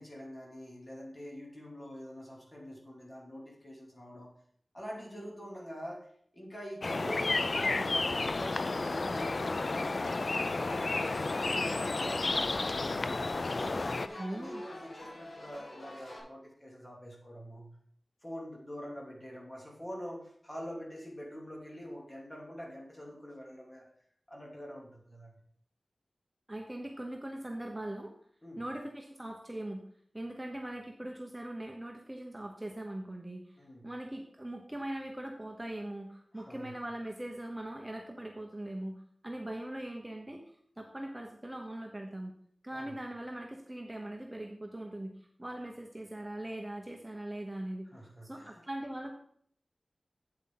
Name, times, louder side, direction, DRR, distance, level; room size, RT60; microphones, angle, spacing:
voice 1, 0.0-4.3 4.7-6.1 6.3-9.9 10.3-13.1 13.5-17.8 18.2-23.8 24.3-25.3 28.4-28.6 33.6-33.9 36.3-36.7 42.7-42.9 47.9-48.6, equal, 25° left, -2 dB, 2.9 m, -45 dB
sound 1, 6.8-14.1, left 3 dB, 55° left, 0.4 m, -32 dB
sound 2, 9.0-16.2, left 1 dB, 85° left, 4.1 m, -47 dB
voice 2, 14.2-14.6 26.5-28.1 28.6-29.8 30.1-33.6 33.8-42.3 42.6-47.9 48.2-49.1, right 1 dB, 15° right, 2 dB, 1.0 m, -41 dB
8.4 x 8.1 x 3.9 m, 0.63 s
wide cardioid pair, 80°, 0 cm